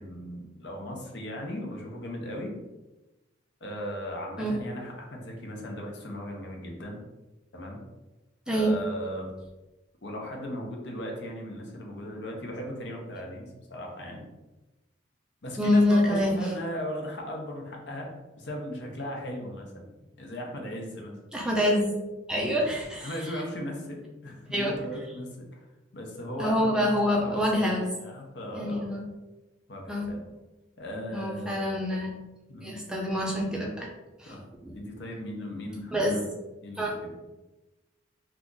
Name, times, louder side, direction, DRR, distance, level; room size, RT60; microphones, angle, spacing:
voice 1, 0.0-2.5 3.6-7.0 7.5-7.8 8.5-9.3 10.0-14.2 15.4-18.1 18.4-19.9 20.2-21.1 22.3-22.6 23.0-25.6 25.9-28.9 29.7-30.2 30.8-31.8 32.5-32.7 34.3-34.4 34.7-36.3 36.6-37.1, equal, 65° left, 1 dB, 0.7 m, -37 dB
voice 2, 8.5-8.8 15.6-16.4 21.3-21.9 22.3-23.2 24.5-24.7 26.4-27.8 28.5-29.0 29.9-30.1 31.1-32.1 32.6-33.9 34.2-34.3 34.6-34.8 35.9-36.2 36.8-36.9, equal, 5° right, -3 dB, 0.4 m, -26 dB
2.8 x 2.4 x 3.7 m, 1.1 s
head